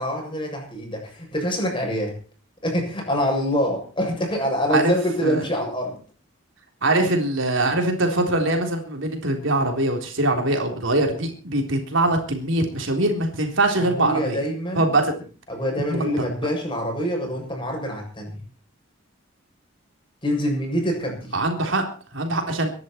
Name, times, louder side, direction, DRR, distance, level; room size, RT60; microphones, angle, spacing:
voice 1, 0.0-2.2 2.6-6.0 13.8-14.9 15.5-18.4 20.2-21.3, equal, 25° left, 1 dB, 7.5 m, -25 dB
voice 2, 6.8-14.4 14.8-15.1 15.9-16.2 21.3-21.8 22.1-22.7, right 2 dB, 65° right, 3 dB, 3.6 m, -22 dB
24.5 x 11.0 x 4.5 m, 0.39 s
head